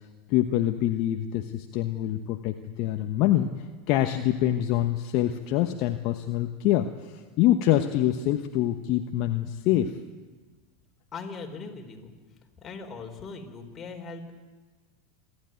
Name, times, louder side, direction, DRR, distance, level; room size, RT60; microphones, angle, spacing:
voice 1, 0.3-3.5 3.9-9.9, left 13 dB, 55° left, 6 dB, 1.1 m, -25 dB
voice 2, 11.1-12.2 12.6-14.3, left 4 dB, 25° left, 2 dB, 4.1 m, -40 dB
27.0 x 12.0 x 9.2 m, 1.3 s
hypercardioid pair, 95°, 0 cm